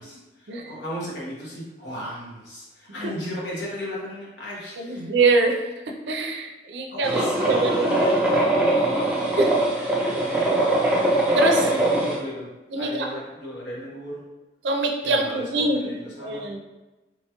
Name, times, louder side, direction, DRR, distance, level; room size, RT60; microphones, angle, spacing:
voice 1, 0.0-5.1 6.9-9.6 9.9-11.0 11.2-12.5 12.8-14.2 15.0-16.6, equal, 80° left, -5 dB, 1.0 m, -36 dB
voice 2, 4.8-5.7 6.1-8.0 9.4-9.5 11.3-11.6 12.7-13.1 14.6-15.8 16.2-16.6, right 3 dB, 85° right, 2 dB, 0.4 m, -23 dB
sound 1, 7.0-12.2, right 1 dB, 5° right, 0.4 m, -22 dB
3.1 x 2.2 x 2.8 m, 1.1 s
head